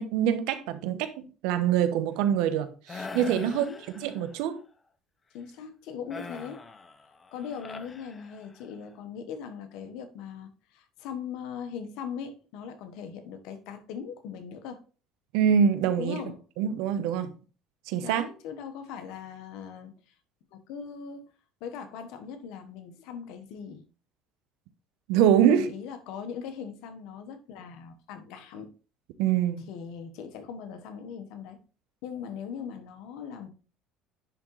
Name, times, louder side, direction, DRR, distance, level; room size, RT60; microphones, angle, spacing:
voice 1, 0.0-3.6 4.0-4.6 15.3-16.2 16.6-17.3 17.9-18.3 25.1-25.7 29.2-29.7, right 9 dB, 80° right, 0.8 m, -24 dB
sound 1, 2.9-4.4 6.1-8.8, left 4 dB, 25° left, 0.7 m, -43 dB
voice 2, 3.4-3.8 5.3-6.6 7.3-14.8 16.0-16.4 18.0-20.1 20.5-21.3 21.6-23.8 25.5-28.7 29.7-31.6 32.0-33.5, left 7 dB, 75° left, 1.1 m, -40 dB
10.0 x 3.7 x 3.1 m
supercardioid pair, 105°, 0 cm